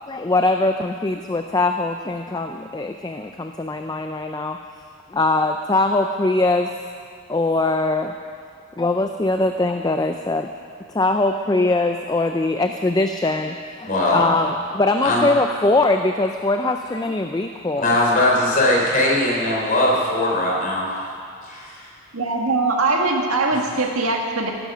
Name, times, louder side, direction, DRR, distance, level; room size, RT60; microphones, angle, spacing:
voice 1, 0.1-4.6 5.1-6.7 7.3-8.2 8.8-10.5 10.9-17.9, left 2 dB, 15° left, 6 dB, 0.4 m, -22 dB
voice 2, 13.8-14.2 15.0-15.3 17.8-20.9 21.4-21.9 23.5-23.6, left 1 dB, 35° left, -3 dB, 3.3 m, -20 dB
voice 3, 22.1-24.5, right 3 dB, 75° right, 1 dB, 1.7 m, -21 dB
15.5 x 11.0 x 6.2 m, 2.3 s
head